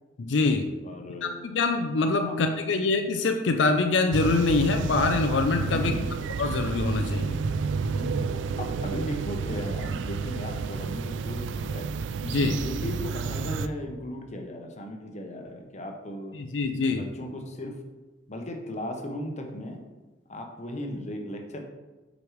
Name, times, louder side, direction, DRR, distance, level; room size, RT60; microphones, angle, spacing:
voice 1, 0.2-0.7 1.2-5.9 6.4-7.4 12.2-12.6 16.5-17.1, left 3 dB, 75° left, 6 dB, 0.5 m, -24 dB
voice 2, 0.8-1.5 2.2-2.4 5.6-6.2 7.9-8.3 8.6-11.9 12.4-16.4 16.9-17.8 18.3-19.8 20.3-21.6, left 1 dB, 40° left, 2 dB, 0.8 m, -36 dB
sound 1, 4.1-13.7, right 5 dB, 80° right, 0.3 m, -30 dB
7.9 x 5.2 x 3.1 m, 1.2 s
head